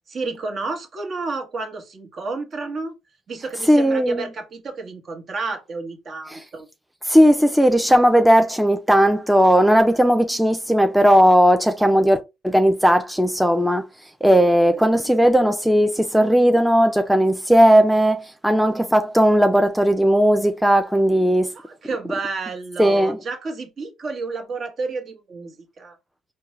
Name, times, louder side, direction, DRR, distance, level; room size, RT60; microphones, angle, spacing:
voice 1, 0.1-2.9 3.3-6.7 14.7-15.3 21.5-26.0, right 3 dB, 50° right, 1.1 m, -31 dB
voice 2, 3.7-4.2 6.3-6.4 7.1-12.2 12.4-13.9 14.2-21.5 22.8-23.2, equal, ahead, 0.5 m, -16 dB
4.4 x 2.2 x 3.1 m
hypercardioid pair, 60°, 0 cm